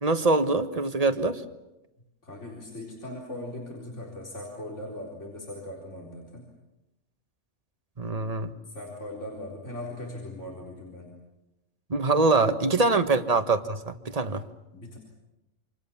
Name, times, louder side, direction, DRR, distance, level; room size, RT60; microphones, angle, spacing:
voice 1, 0.0-1.4 8.0-8.5 11.9-14.4, right 3 dB, 30° right, 9 dB, 1.5 m, -24 dB
voice 2, 2.2-6.5 8.7-11.1 12.9-13.1 14.7-15.0, left 1 dB, 70° left, -2 dB, 4.6 m, -39 dB
28.5 x 27.0 x 7.2 m, 0.96 s
omnidirectional pair, 1.3 m